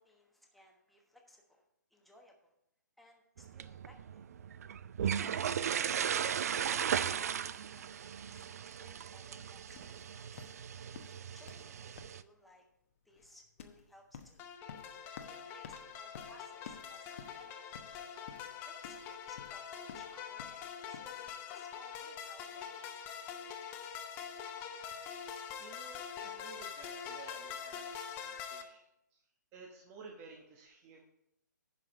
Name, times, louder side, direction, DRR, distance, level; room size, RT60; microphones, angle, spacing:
voice 1, 0.0-1.6 1.9-2.5 3.0-4.2 5.1-10.5 11.3-12.7 13.0-14.5 15.2-17.7 18.6-22.9, left 1 dB, ahead, 0 dB, 1.1 m, -62 dB
sound 1, 3.4-12.2, right 8 dB, 55° right, 0.4 m, -37 dB
sound 2, 9.7-21.1, left 7 dB, 45° left, 1.0 m, -53 dB
sound 3, 14.4-28.6, left 7 dB, 20° left, 0.8 m, -44 dB
voice 2, 24.9-28.9 29.1-29.2 29.5-31.0, right 4 dB, 25° right, 0 dB, 1.1 m, -54 dB
10.5 x 5.0 x 5.2 m, 0.79 s
figure-of-eight pair, 135°, 10 cm